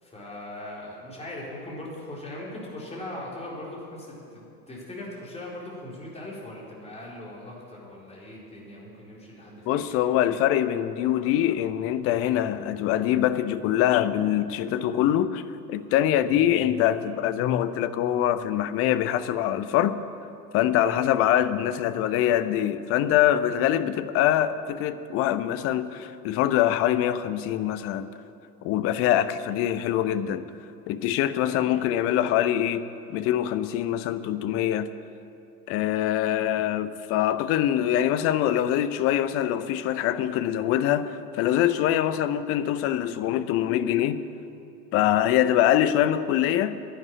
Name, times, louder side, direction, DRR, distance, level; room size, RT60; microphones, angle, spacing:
voice 1, 0.0-10.0 16.2-16.4 20.8-21.0 31.4-31.8, left 1 dB, 15° left, -4 dB, 4.2 m, -40 dB
voice 2, 9.7-20.0 20.5-28.1 28.6-30.5 30.9-34.9 35.7-44.2 44.9-46.8, left 11 dB, 30° left, 13 dB, 0.6 m, -24 dB
11.5 x 10.5 x 8.9 m, 2.7 s
figure-of-eight pair, 85°, 49 cm